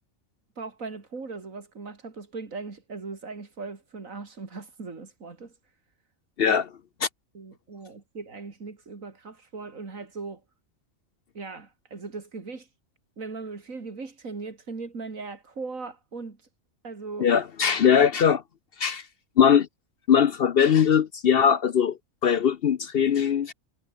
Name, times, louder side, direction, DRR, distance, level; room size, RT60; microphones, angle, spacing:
voice 1, 0.6-5.5 6.4-6.6 7.3-10.4 11.3-12.7 13.2-16.4 16.8-17.5, right 4 dB, 80° right, 3.1 m, -39 dB
voice 2, 17.2-18.4 18.8-19.0 19.4-19.7 20.1-22.0 22.2-23.5, left 8 dB, 55° left, 0.8 m, -20 dB
omnidirectional pair, 1.4 m